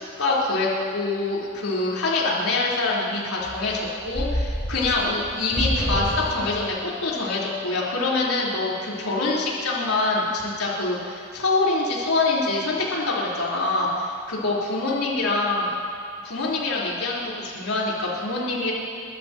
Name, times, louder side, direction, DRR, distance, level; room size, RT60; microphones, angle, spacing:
voice 1, 0.0-6.7 7.0-15.7 16.2-18.7, left 2 dB, 85° left, -6 dB, 4.1 m, -25 dB
sound 1, 3.4-6.8, equal, 25° left, 4.3 m, -28 dB
30.0 x 14.0 x 3.0 m, 2.3 s
head